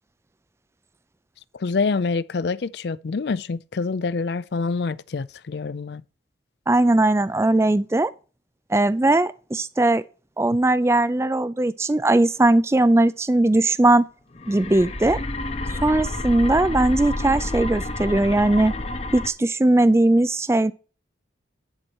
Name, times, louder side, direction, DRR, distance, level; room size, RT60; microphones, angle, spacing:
voice 1, 1.5-6.0, left 4 dB, 60° left, 0.4 m, -26 dB
voice 2, 6.7-8.1 8.7-10.0 10.4-14.1 14.5-15.2 15.8-18.7 19.1-20.7, right 2 dB, 15° right, 0.4 m, -19 dB
sound 1, 14.3-19.3, left 2 dB, 35° left, 0.8 m, -29 dB
10.5 x 4.2 x 6.3 m
head